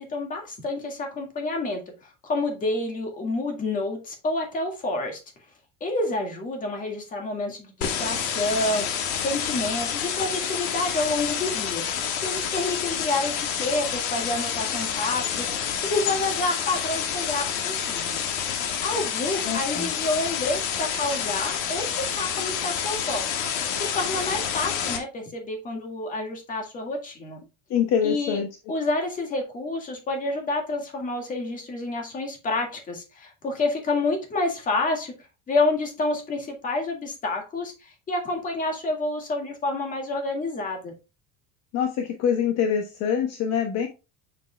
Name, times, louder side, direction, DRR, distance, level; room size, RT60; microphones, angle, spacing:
voice 1, 0.0-5.2 5.8-11.8 12.2-18.2 18.8-23.2 23.8-27.4 28.0-28.4 28.7-35.1 35.5-40.9, left 2 dB, 25° left, 1.9 m, -29 dB
sound 1, 7.8-25.0, left 8 dB, 75° left, 1.7 m, -28 dB
voice 2, 19.4-19.9 27.7-28.5 41.7-43.9, left 7 dB, 45° left, 1.0 m, -25 dB
7.1 x 6.8 x 2.2 m
cardioid pair, 175°, 35 cm